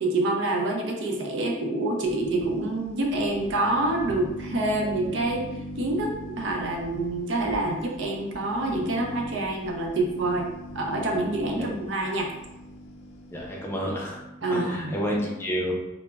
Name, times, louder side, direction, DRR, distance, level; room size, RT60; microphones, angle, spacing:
voice 1, 0.0-5.5 5.8-10.5 10.7-12.3 14.4-15.0, right 2 dB, 65° right, 1 dB, 0.5 m, -27 dB
sound 1, 2.0-13.7, equal, 85° left, 0.5 m, -41 dB
voice 2, 13.3-15.7, equal, 10° left, -3 dB, 0.4 m, -30 dB
2.1 x 2.0 x 3.3 m, 0.94 s
head